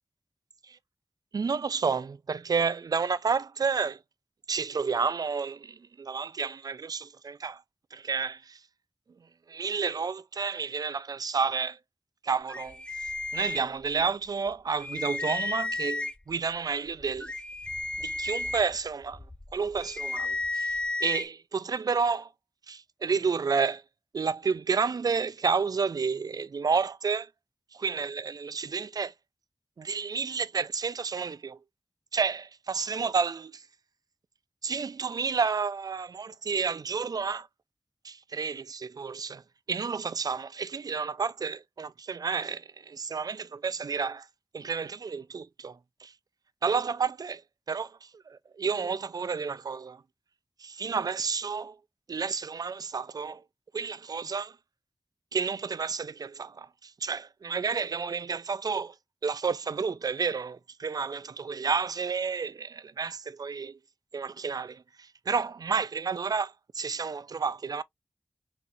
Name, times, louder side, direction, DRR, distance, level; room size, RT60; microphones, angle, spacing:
voice 1, 1.3-4.0 4.5-7.6 7.9-8.6 9.5-11.8 12.2-17.3 18.0-19.2 19.5-22.3 22.7-23.8 24.1-27.3 27.8-29.1 29.8-31.6 32.1-33.6 34.6-37.5 38.0-39.4 39.7-44.3 44.5-46.1 46.6-47.4 47.7-50.0 50.6-51.8 52.1-53.4 53.7-54.6 55.3-58.9 59.2-63.8 64.1-67.8, right 5 dB, 60° right, 0.4 m, -31 dB
sound 1, 12.5-14.1 14.5-14.6 14.8-16.4 16.9-21.3, left 3 dB, 15° left, 0.4 m, -33 dB
4.2 x 2.7 x 2.4 m
wide cardioid pair, 60°, 7 cm